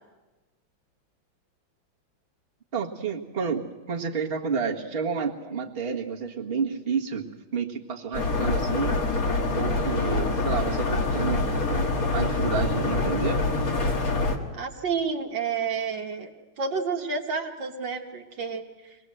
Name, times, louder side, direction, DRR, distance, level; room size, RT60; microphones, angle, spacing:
voice 1, 2.7-9.0 9.5-13.4, right 5 dB, 30° right, -1 dB, 1.7 m, -30 dB
sound 1, 8.1-14.4, left 3 dB, 45° left, 2.1 m, -25 dB
voice 2, 14.5-16.3 16.6-18.6, right 5 dB, 65° right, 2 dB, 1.9 m, -30 dB
24.0 x 19.5 x 7.8 m, 1.2 s
omnidirectional pair, 2.2 m